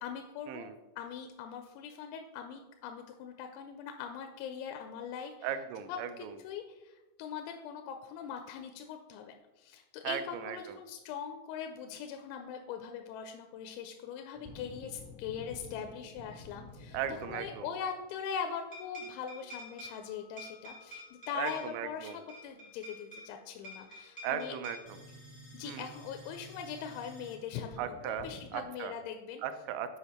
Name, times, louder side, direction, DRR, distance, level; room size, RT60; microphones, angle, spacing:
voice 1, 0.0-0.7 1.0-5.3 5.9-24.5 25.5-29.4, left 7 dB, 85° left, 5 dB, 2.8 m, -41 dB
voice 2, 5.4-6.3 10.0-10.8 16.9-17.7 21.3-22.2 24.2-25.0 25.6-25.9 27.8-28.3 28.5-28.9 29.4-30.0, right 9 dB, 85° right, 10 dB, 3.0 m, -37 dB
sound 1, 14.3-18.0 18.7-28.6, left 1 dB, 10° left, 0.5 m, -50 dB
8.1 x 5.1 x 4.3 m, 1.1 s
omnidirectional pair, 5.3 m